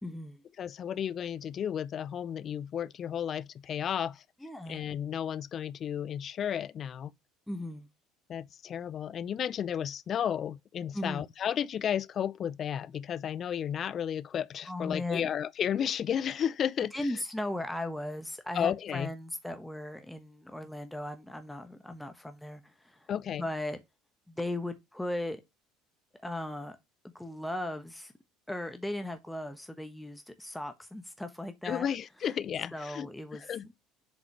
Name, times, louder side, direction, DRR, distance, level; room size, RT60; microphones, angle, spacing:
voice 1, 0.0-0.4 4.4-4.8 7.5-7.9 10.9-11.2 14.7-15.3 16.8-23.1 23.4-23.8 24.3-25.4 26.2-26.8 27.1-28.1 28.5-31.9 32.7-33.5, left 1 dB, 5° left, 1.0 m, -37 dB
voice 2, 0.6-4.2 4.7-7.1 8.3-16.9 18.5-19.1 23.1-23.4 31.6-33.7, left 9 dB, 45° left, 0.4 m, -33 dB
7.1 x 4.9 x 3.1 m
hypercardioid pair, 65°, 0 cm